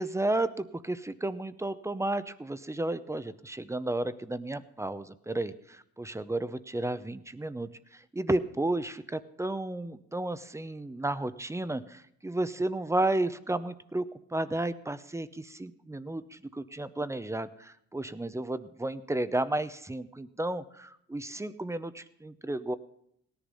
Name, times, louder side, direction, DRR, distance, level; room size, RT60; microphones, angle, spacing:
voice 1, 0.0-22.8, right 2 dB, 10° right, 14 dB, 0.6 m, -33 dB
17.5 x 10.5 x 5.4 m, 0.71 s
cardioid pair, 105°, 29 cm